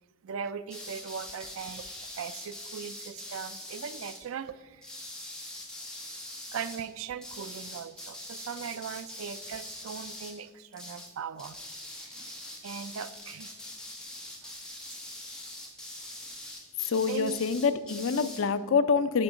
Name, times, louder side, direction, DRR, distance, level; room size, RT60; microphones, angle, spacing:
voice 1, 0.2-1.9 2.2-4.9 6.5-11.6 12.0-12.3 12.6-13.6 14.4-14.5 16.9-17.4, right 7 dB, 90° right, 14 dB, 0.4 m, -39 dB
sound 1, 0.7-4.2 4.8-6.8 7.2-10.4 10.7-11.1 11.4-18.4, left 1 dB, 5° left, 1.1 m, -43 dB
voice 2, 16.8-19.2, left 5 dB, 70° left, 12 dB, 0.5 m, -26 dB
9.7 x 3.8 x 6.2 m, 1.5 s
head